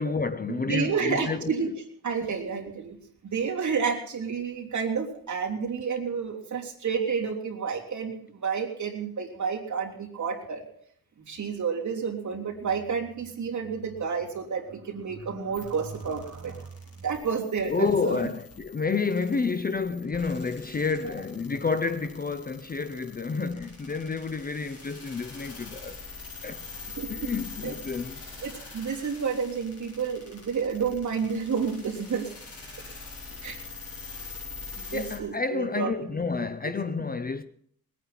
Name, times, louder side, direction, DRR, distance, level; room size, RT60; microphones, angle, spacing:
voice 1, 0.0-1.5 17.7-26.0 26.4-26.7 27.1-28.2 34.9-37.4, left 4 dB, 25° left, 0.5 m, -29 dB
voice 2, 0.7-1.7 2.0-3.0 3.2-8.1 8.4-10.6 11.2-16.7 17.0-18.2 27.0-27.3 27.6-27.7 28.4-32.3 33.4-33.6 34.9-36.1, right 6 dB, 55° right, 3.3 m, -30 dB
sound 1, 15.5-35.2, left 3 dB, 40° left, 4.6 m, -44 dB
21.0 x 9.1 x 5.8 m
wide cardioid pair, 155°, 36 cm